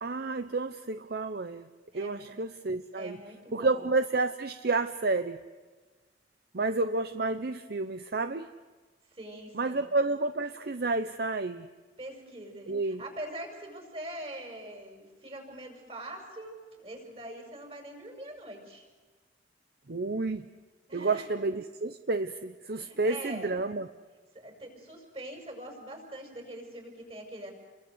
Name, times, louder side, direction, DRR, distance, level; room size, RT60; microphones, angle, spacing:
voice 1, 0.0-1.7 1.9-3.2 3.5-5.4 6.5-8.5 9.5-11.7 12.7-13.0 19.9-20.5 20.9-23.9, right 3 dB, 60° right, 10 dB, 0.8 m, -30 dB
voice 2, 1.9-2.2 2.9-3.8 9.1-9.9 12.0-18.8 20.9-21.2 22.7-23.6 24.3-27.5, right 1 dB, 35° right, 3 dB, 6.4 m, -43 dB
30.0 x 22.5 x 8.0 m, 1.3 s
head